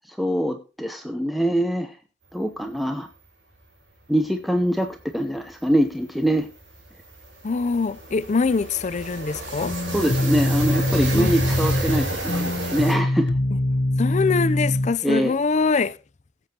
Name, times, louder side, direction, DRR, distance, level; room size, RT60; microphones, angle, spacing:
voice 1, 0.0-2.0 2.3-3.1 4.1-6.5 9.8-13.3 15.0-15.3, equal, ahead, 0.7 m, -24 dB
sound 1, 4.5-4.6 4.9-5.1 5.4-12.9, right 1 dB, 90° right, 4.6 m, -31 dB
voice 2, 7.4-9.7 11.1-11.3 14.0-16.0, left 4 dB, 40° left, 0.5 m, -23 dB
sound 2, 9.6-14.9, left 1 dB, 75° left, 1.2 m, -23 dB
17.5 x 7.7 x 2.9 m
head